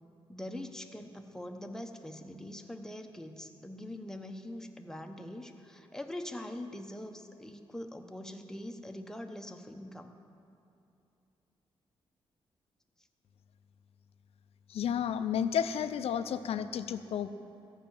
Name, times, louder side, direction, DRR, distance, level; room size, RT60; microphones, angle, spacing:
voice 1, 0.3-10.1, left 1 dB, 5° left, 5 dB, 0.9 m, -43 dB
voice 2, 14.7-17.3, left 8 dB, 85° left, 11 dB, 0.5 m, -32 dB
14.0 x 5.7 x 8.7 m, 2.7 s
cardioid pair, 80°, 10 cm